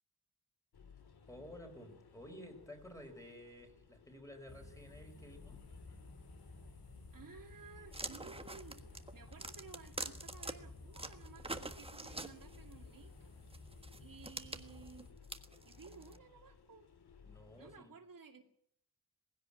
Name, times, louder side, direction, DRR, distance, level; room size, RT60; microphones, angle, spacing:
sound 1, 0.7-17.8, left 6 dB, 85° left, 2.1 m, -61 dB
voice 1, 1.3-5.6 17.2-17.9, left 1 dB, 10° left, 4 dB, 4.9 m, -53 dB
sound 2, 4.5-15.1, left 2 dB, 65° left, 5.6 m, -55 dB
voice 2, 7.1-15.1 15.7-16.9 17.6-18.4, right 5 dB, 60° right, 3 dB, 2.4 m, -56 dB
sound 3, 7.9-10.5 10.9-12.7 13.5-16.2, right 2 dB, 15° right, 1.4 m, -45 dB
20.0 x 16.5 x 8.9 m, 0.66 s
wide cardioid pair, 145°, 38 cm